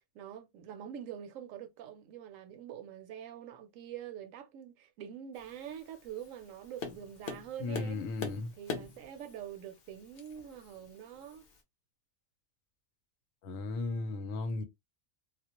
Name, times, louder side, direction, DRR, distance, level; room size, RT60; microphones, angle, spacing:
voice 1, 0.0-8.1 8.6-11.5, right 9 dB, 80° right, 0.9 m, -45 dB
Tap, 5.4-11.6, left 5 dB, 55° left, 0.7 m, -45 dB
voice 2, 7.6-8.5 13.4-14.6, left 3 dB, 80° left, 1.0 m, -35 dB
2.4 x 2.0 x 2.8 m
omnidirectional pair, 1.4 m